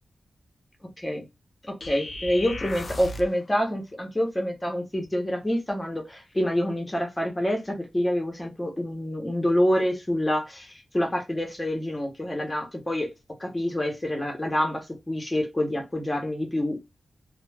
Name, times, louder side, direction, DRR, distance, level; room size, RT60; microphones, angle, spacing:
voice 1, 1.7-13.1 13.4-16.8, equal, 15° left, 2 dB, 0.7 m, -27 dB
sound 1, 1.8-3.4, left 2 dB, 45° left, 0.3 m, -36 dB
2.2 x 2.0 x 3.2 m, 0.22 s
wide cardioid pair, 165°, 0 cm